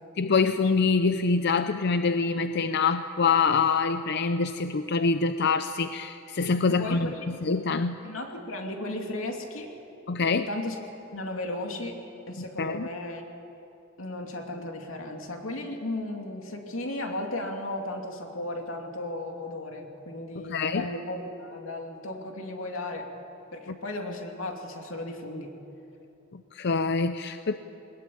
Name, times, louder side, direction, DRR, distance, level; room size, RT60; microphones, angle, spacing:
voice 1, 0.2-8.0 10.1-10.5 12.6-12.9 20.5-20.9 26.3-27.6, left 4 dB, 55° left, 10 dB, 0.6 m, -25 dB
voice 2, 6.7-7.2 8.0-9.7 10.3-10.8 11.1-13.2 14.0-23.1 23.5-25.5, left 1 dB, 85° left, 2 dB, 2.9 m, -35 dB
21.0 x 21.0 x 8.8 m, 2.9 s
head